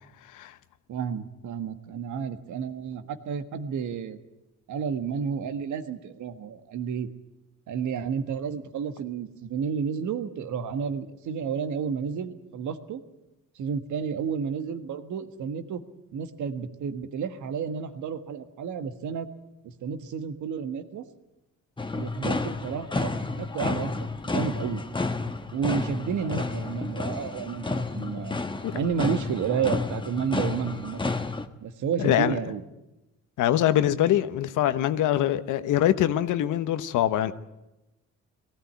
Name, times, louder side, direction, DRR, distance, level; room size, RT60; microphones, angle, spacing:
voice 1, 0.9-4.2 4.7-7.1 7.7-13.0 13.5-15.8 16.1-19.3 19.6-21.0 21.9-23.1 23.4-24.8 25.5-28.4 28.7-31.0 31.6-32.6, right 6 dB, 75° right, 1.6 m, -31 dB
sound 1, 21.8-31.5, left 3 dB, 15° left, 1.3 m, -31 dB
voice 2, 32.0-32.4 33.4-37.3, left 12 dB, 80° left, 1.1 m, -23 dB
19.5 x 15.0 x 9.5 m
cardioid pair, 90°, 30 cm